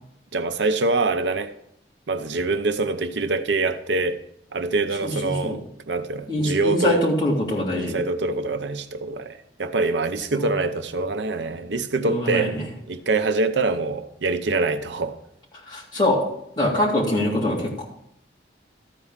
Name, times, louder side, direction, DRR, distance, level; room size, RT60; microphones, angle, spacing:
voice 1, 0.3-1.5 2.1-4.2 4.5-5.6 5.9-7.1 7.8-12.6 12.9-15.2, right 3 dB, 85° right, 0.7 m, -24 dB
voice 2, 5.0-5.6 6.3-8.0 10.3-10.5 12.0-12.6 15.7-16.2 16.6-17.8, left 1 dB, 25° left, 3.0 m, -24 dB
13.5 x 4.7 x 7.3 m
head